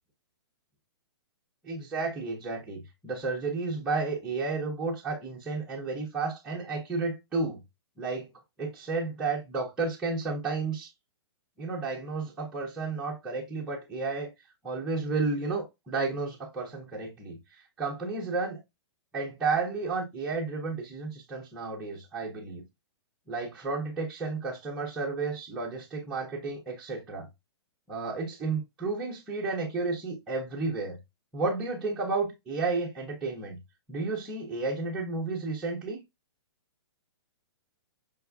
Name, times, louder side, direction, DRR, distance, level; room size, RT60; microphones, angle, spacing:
voice 1, 1.6-7.6 8.0-8.3 8.6-10.9 11.6-14.3 14.6-17.4 17.8-18.6 19.1-22.6 23.3-27.3 27.9-31.0 31.3-33.6 33.9-36.0, right 3 dB, 5° right, 0.4 m, -32 dB
5.0 x 2.3 x 2.3 m
hypercardioid pair, 170°, 14 cm